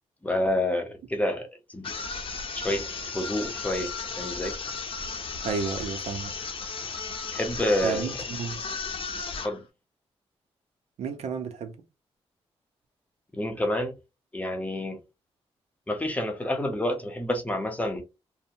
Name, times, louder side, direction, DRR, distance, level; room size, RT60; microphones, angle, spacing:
voice 1, 0.2-1.9 2.5-2.9 3.1-4.5 7.3-8.1 9.4-9.6 13.3-13.9 14.3-15.0 15.9-18.0, left 1 dB, 15° left, 0.7 m, -28 dB
sound 1, 1.8-9.6, left 4 dB, 55° left, 0.6 m, -35 dB
voice 2, 5.4-6.3 7.8-8.6 11.0-11.7, right 5 dB, 85° right, 0.5 m, -31 dB
2.7 x 2.1 x 2.6 m
cardioid pair, 100°, 11 cm